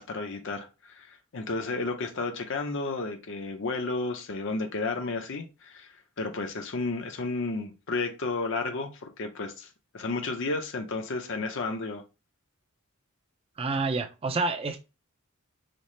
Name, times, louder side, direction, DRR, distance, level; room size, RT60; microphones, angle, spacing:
voice 1, 0.0-9.7 9.9-12.0, left 3 dB, 60° left, 0.7 m, -32 dB
voice 2, 13.6-14.8, right 3 dB, 25° right, 0.4 m, -28 dB
4.1 x 2.0 x 3.1 m
head